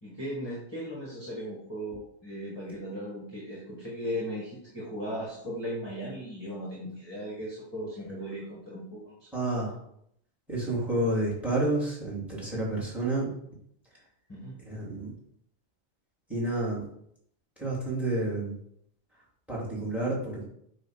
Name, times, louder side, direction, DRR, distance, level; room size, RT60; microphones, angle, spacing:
voice 1, 0.0-9.3 14.3-14.6, equal, 20° left, -5 dB, 2.0 m, -37 dB
voice 2, 9.3-9.8 10.5-13.3 14.6-15.1 16.3-16.8 17.6-18.5 19.5-20.4, right 1 dB, ahead, -5 dB, 3.4 m, -29 dB
8.7 x 3.3 x 5.9 m, 0.72 s
omnidirectional pair, 1.3 m